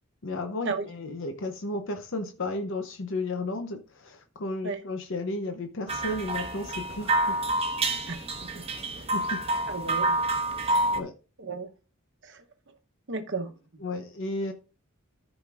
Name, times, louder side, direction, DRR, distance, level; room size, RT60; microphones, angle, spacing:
voice 1, 0.2-7.4 9.1-9.4 10.9-11.1 13.8-14.5, left 2 dB, 60° left, 0.8 m, -33 dB
sound 1, 5.9-11.0, right 2 dB, 25° right, 1.2 m, -28 dB
voice 2, 8.1-8.6 9.0-9.1 9.7-10.2 10.6-10.9 11.4-11.7 12.2-12.5 13.1-13.5, right 3 dB, 55° right, 1.0 m, -35 dB
14.0 x 5.1 x 2.5 m
head